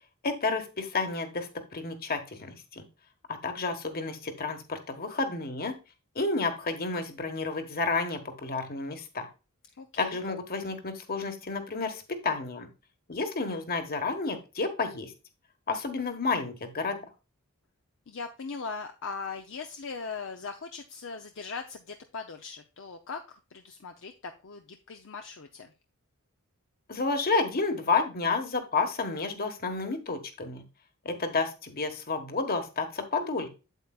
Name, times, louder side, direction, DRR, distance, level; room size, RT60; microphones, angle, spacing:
voice 1, 0.2-2.8 3.3-5.7 6.1-9.3 10.0-12.7 13.1-15.1 15.7-17.0 26.9-30.6 31.0-33.5, left 3 dB, 45° left, 7 dB, 1.4 m, -30 dB
voice 2, 9.8-10.2 18.1-25.7, left 4 dB, 60° left, 5 dB, 0.7 m, -40 dB
8.1 x 8.1 x 2.4 m, 0.30 s
head